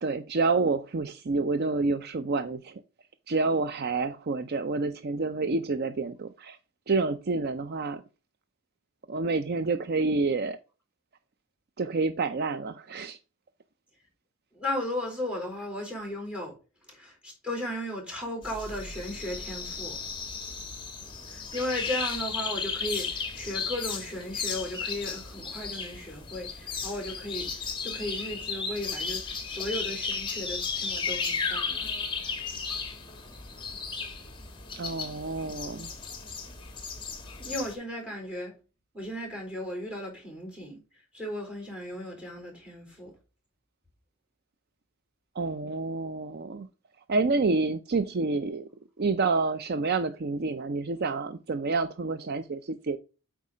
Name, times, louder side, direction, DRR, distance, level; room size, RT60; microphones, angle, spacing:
voice 1, 0.0-2.8 3.3-6.6 6.9-8.0 9.1-10.6 11.8-13.2 34.8-35.9 45.4-46.7 47.1-48.7 49.0-53.0, right 3 dB, 45° right, 0.5 m, -28 dB
voice 2, 14.5-16.5 16.9-20.0 21.3-27.5 27.8-31.9 37.4-38.5 38.9-40.8 41.1-43.1, left 1 dB, 5° right, 3.9 m, -35 dB
sound 1, 18.4-37.7, left 5 dB, 20° left, 1.3 m, -35 dB
8.3 x 4.7 x 4.9 m
head